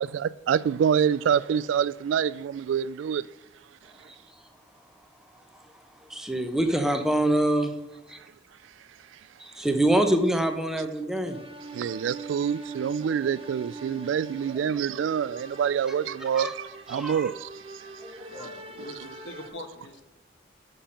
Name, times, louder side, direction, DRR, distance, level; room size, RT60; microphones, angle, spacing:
voice 1, 0.0-3.3 11.7-17.9 18.2-18.4, right 8 dB, 80° right, 0.3 m, -26 dB
voice 2, 6.1-7.7 8.1-8.2 9.4-11.4 16.4-16.5 16.9-17.3 18.0-18.5, right 1 dB, ahead, 0.8 m, -25 dB
sound 1, 11.2-19.5, right 3 dB, 30° right, 0.8 m, -43 dB
voice 3, 18.3-20.0, left 2 dB, 70° left, 1.2 m, -42 dB
6.7 x 5.7 x 5.6 m
head